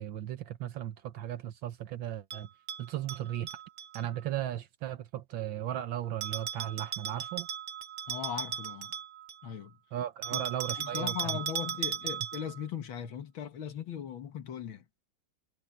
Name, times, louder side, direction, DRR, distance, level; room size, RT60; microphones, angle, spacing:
voice 1, 0.0-2.5 2.8-3.5 3.9-7.5 9.9-11.4, right 11 dB, 80° right, 1.7 m, -36 dB
Bell, 2.3-4.0 6.2-9.5 10.2-12.6, right 8 dB, 50° right, 1.2 m, -37 dB
voice 2, 8.1-8.9 9.4-9.8 10.3-14.9, left 8 dB, 85° left, 2.2 m, -39 dB
omnidirectional pair, 2.1 m